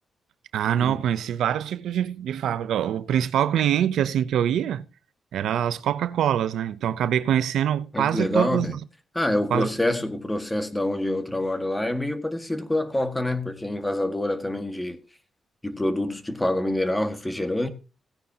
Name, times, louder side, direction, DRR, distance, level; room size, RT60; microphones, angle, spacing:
voice 1, 0.5-4.8 5.3-8.8 9.5-9.7, right 10 dB, 85° right, 0.6 m, -24 dB
voice 2, 7.9-8.8 9.1-15.0 15.6-17.7, left 1 dB, 10° left, 1.7 m, -26 dB
17.0 x 9.5 x 2.8 m
cardioid pair, 80°, 0 cm